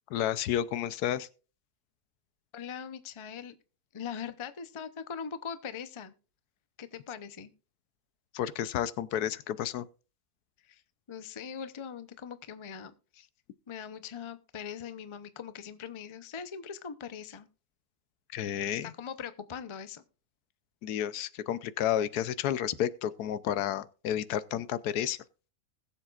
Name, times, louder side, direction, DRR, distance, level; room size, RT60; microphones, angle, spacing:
voice 1, 0.1-1.3 8.3-9.8 18.3-18.9 20.8-25.2, left 10 dB, 80° left, 1.2 m, -31 dB
voice 2, 2.5-3.5 3.9-6.1 6.8-7.5 10.6-10.8 11.1-12.9 13.7-17.5 18.7-20.0, left 7 dB, 35° left, 0.4 m, -41 dB
20.5 x 7.3 x 2.4 m
omnidirectional pair, 1.7 m